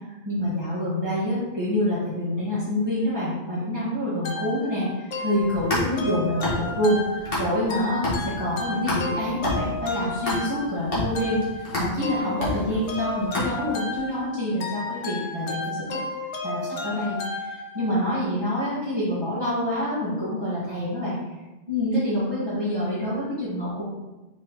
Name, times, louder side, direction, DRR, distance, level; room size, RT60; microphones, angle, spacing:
voice 1, 0.2-16.0 16.4-21.2 21.7-23.8, left 1 dB, 20° right, -13 dB, 2.1 m, -27 dB
sound 1, 4.2-18.1, left 3 dB, 80° left, 1.2 m, -34 dB
sound 2, 5.4-7.7 8.0-14.0, left 1 dB, 50° left, 2.3 m, -29 dB
6.4 x 4.0 x 4.3 m, 1.1 s
omnidirectional pair, 1.2 m